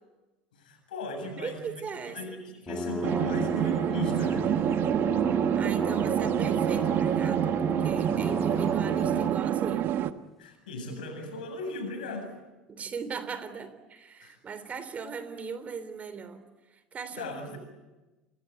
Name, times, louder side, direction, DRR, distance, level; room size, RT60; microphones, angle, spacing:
voice 1, 0.5-1.7 2.0-4.5 10.4-12.3 14.2-14.4 17.2-17.6, left 3 dB, 75° left, 6 dB, 7.8 m, -37 dB
voice 2, 1.4-2.4 5.5-9.9 12.7-17.6, right 6 dB, 30° right, 12 dB, 3.3 m, -39 dB
sound 1, 2.7-9.4, left 1 dB, 5° left, 2.3 m, -34 dB
sound 2, 3.0-10.1, right 11 dB, 45° right, 1.2 m, -27 dB
28.0 x 21.0 x 9.5 m, 1.1 s
figure-of-eight pair, 70°, 5 cm